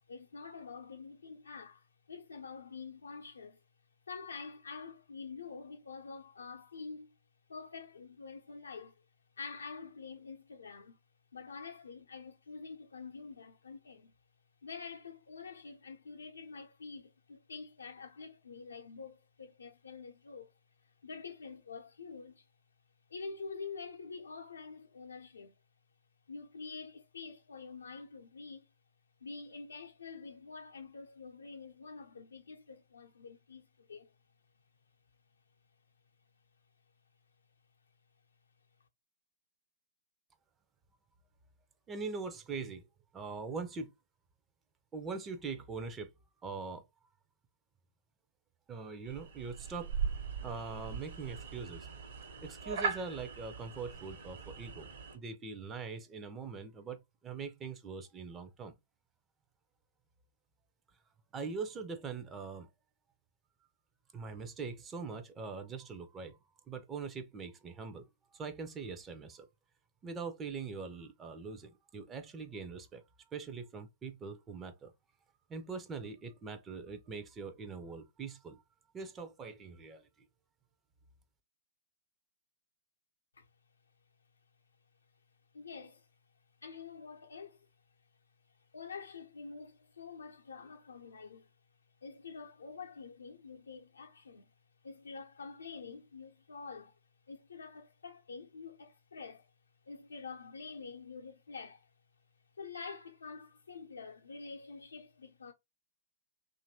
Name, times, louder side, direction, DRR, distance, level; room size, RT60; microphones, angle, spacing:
voice 1, 0.1-3.6 4.1-7.2 7.5-9.0 9.4-11.0 11.3-14.1 14.6-20.5 21.0-22.5 23.1-25.6 26.3-28.7 29.2-34.1 83.4-83.5 85.5-86.1 86.6-87.7 88.7-91.5 92.0-94.5 94.8-97.0 97.3-99.5 99.8-101.9 102.6-105.5, left 5 dB, 75° left, 0.6 m, -47 dB
voice 2, 41.9-42.8 43.1-43.9 44.9-46.1 46.4-46.8 48.7-49.9 50.4-51.9 52.4-54.9 55.1-58.7 61.3-62.7 64.1-66.4 66.7-68.1 68.3-69.5 70.0-73.0 73.3-74.9 75.5-78.6 78.9-80.0, right 4 dB, 20° right, 0.5 m, -42 dB
sound 1, 49.1-55.2, right 6 dB, 60° right, 1.0 m, -40 dB
2.8 x 2.5 x 2.7 m
figure-of-eight pair, 110°, 0 cm